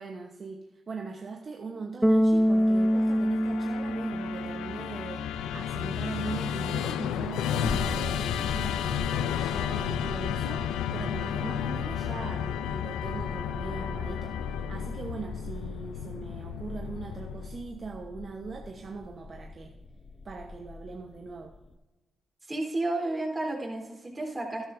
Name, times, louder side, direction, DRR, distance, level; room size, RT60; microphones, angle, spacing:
voice 1, 0.0-19.8 20.2-21.5, right 4 dB, 50° right, 3 dB, 1.0 m, -40 dB
Bass guitar, 2.0-5.1, equal, 5° right, 0.3 m, -25 dB
Musical instrument, 2.4-17.7, left 9 dB, 90° left, 0.4 m, -33 dB
sound 1, 5.2-21.7, left 3 dB, 50° left, 0.9 m, -41 dB
voice 2, 22.5-24.7, right 2 dB, 25° right, 0 dB, 3.8 m, -31 dB
13.0 x 11.0 x 2.7 m, 1.1 s
supercardioid pair, 50°, 0 cm